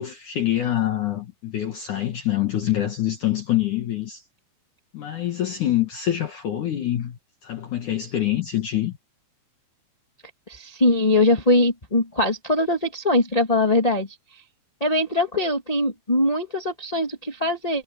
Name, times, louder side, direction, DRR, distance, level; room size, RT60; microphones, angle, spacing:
voice 1, 0.0-4.2 4.9-9.0, left 12 dB, 60° left, 2.2 m, -25 dB
voice 2, 10.5-14.1 14.8-17.8, left 1 dB, 15° left, 1.2 m, -21 dB
omnidirectional pair, 5.3 m